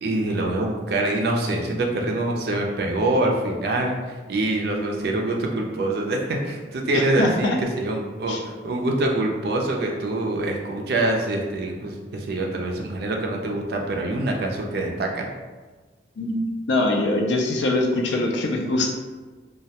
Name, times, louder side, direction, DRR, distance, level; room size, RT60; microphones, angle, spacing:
voice 1, 0.0-4.0 4.3-8.4 8.6-15.3, right 2 dB, 55° right, 1 dB, 0.4 m, -25 dB
voice 2, 6.9-7.6 8.3-8.4 16.2-16.4 16.7-18.9, left 2 dB, 70° left, 1 dB, 0.4 m, -23 dB
2.2 x 2.1 x 2.8 m, 1.3 s
head